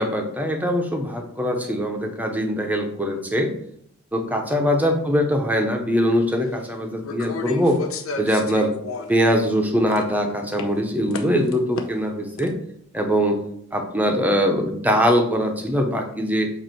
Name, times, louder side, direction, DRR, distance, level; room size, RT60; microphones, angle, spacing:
voice 1, 0.0-3.5 4.1-7.8 8.2-8.7 9.1-12.5 12.9-13.4 13.7-16.5, equal, 10° right, 3 dB, 0.8 m, -22 dB
sound 1, 6.1-6.2 7.0-9.3 9.6-10.2 10.5-10.6 11.1-12.1 12.4-12.5, left 4 dB, 75° left, 0.7 m, -33 dB
7.8 x 2.7 x 4.5 m, 0.69 s
head